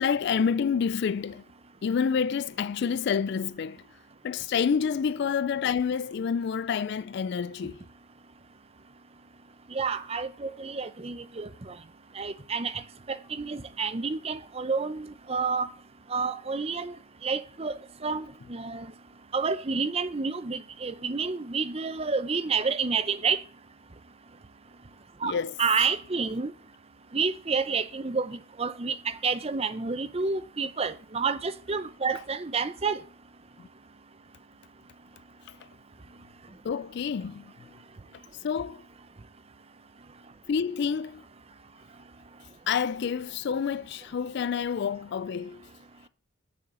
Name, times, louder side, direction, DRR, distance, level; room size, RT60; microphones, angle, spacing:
voice 1, 0.0-1.4 1.8-3.9 4.2-7.9 25.2-25.5 33.6-33.7 35.5-35.6 36.6-37.7 38.4-38.8 40.5-41.2 42.7-45.7, left 6 dB, 55° left, 0.3 m, -28 dB
voice 2, 9.7-11.7 12.2-12.8 13.1-15.7 16.1-16.9 17.2-18.9 19.3-23.4 25.2-25.3 25.6-26.5 27.1-33.0, right 5 dB, 30° right, 0.6 m, -29 dB
6.9 x 6.3 x 7.4 m
head